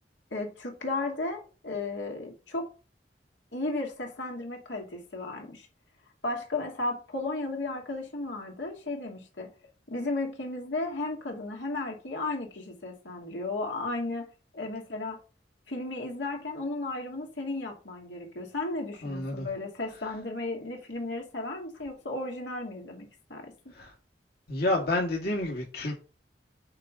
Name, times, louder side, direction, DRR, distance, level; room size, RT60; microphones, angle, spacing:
voice 1, 0.3-2.7 3.5-5.7 6.2-9.5 9.9-15.2 15.7-23.7, left 2 dB, 90° left, 2.6 m, -34 dB
voice 2, 19.0-19.5 23.8-23.9 24.5-26.0, left 2 dB, 60° left, 1.8 m, -29 dB
8.8 x 3.7 x 6.6 m
head